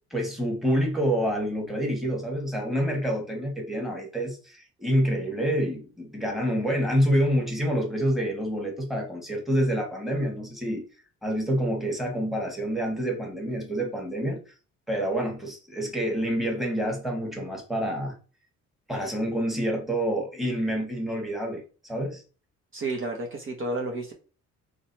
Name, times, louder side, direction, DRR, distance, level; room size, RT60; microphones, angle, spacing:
voice 1, 0.1-10.8 11.2-14.4 14.9-18.2 18.9-22.2, equal, ahead, 1.5 m, -27 dB
voice 2, 22.7-24.1, right 2 dB, 45° right, 1.0 m, -31 dB
3.9 x 3.2 x 2.8 m
cardioid pair, 90°, 30 cm